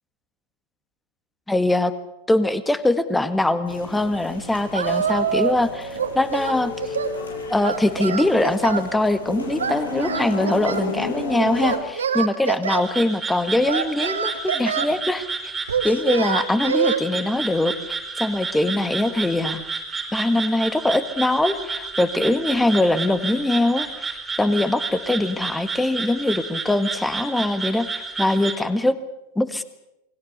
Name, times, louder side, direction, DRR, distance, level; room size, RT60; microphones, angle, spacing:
voice 1, 1.5-1.9 2.3-6.7 7.5-15.3 15.8-19.6 20.1-24.1 24.4-29.0 29.4-29.6, left 1 dB, 5° left, 13 dB, 1.8 m, -22 dB
sound 1, 3.7-11.8, left 2 dB, 70° left, 6.5 m, -32 dB
Singing, 4.7-5.6 5.9-7.2 7.6-8.9 9.6-10.9 11.6-12.8 13.7-14.9 15.7-17.0, right 7 dB, 70° right, 2.0 m, -25 dB
sound 2, 12.7-28.6, right 4 dB, 15° right, 4.0 m, -31 dB
29.0 x 21.5 x 6.7 m, 0.89 s
figure-of-eight pair, 90°, 0 cm